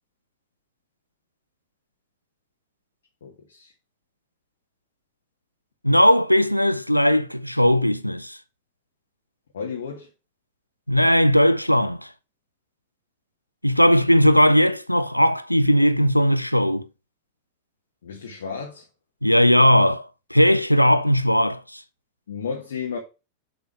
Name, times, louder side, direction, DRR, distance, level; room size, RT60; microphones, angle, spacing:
voice 1, 3.2-3.7 9.5-10.1 18.0-18.8 22.3-23.0, left 6 dB, 65° left, 1.4 m, -33 dB
voice 2, 5.8-8.4 10.9-12.1 13.6-16.9 19.2-21.8, equal, 90° left, 0.5 m, -18 dB
7.2 x 4.0 x 4.8 m
figure-of-eight pair, 90°, 0 cm